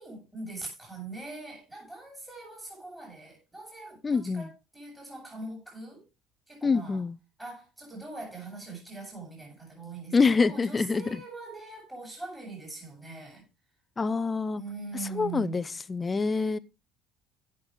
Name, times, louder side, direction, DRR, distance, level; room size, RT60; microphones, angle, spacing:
voice 1, 0.0-6.0 6.5-7.0 7.4-13.5 14.6-15.8, right 3 dB, 10° right, 7.1 m, -42 dB
voice 2, 4.0-4.5 6.6-7.2 10.1-11.1 14.0-14.6 15.2-16.6, left 4 dB, 15° left, 0.5 m, -26 dB
16.0 x 6.7 x 3.7 m
cardioid pair, 165°, 0 cm